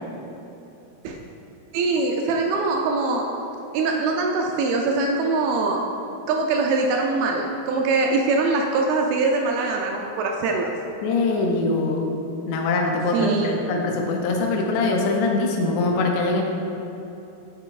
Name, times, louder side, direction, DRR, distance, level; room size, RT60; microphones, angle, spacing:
voice 1, 1.7-3.3 3.7-5.8 6.3-10.7 13.1-13.6, right 3 dB, 85° right, 1 dB, 2.1 m, -23 dB
voice 2, 11.0-12.1 12.5-16.4, left 3 dB, 85° left, 0 dB, 2.7 m, -23 dB
8.6 x 7.6 x 2.4 m, 3.0 s
omnidirectional pair, 4.9 m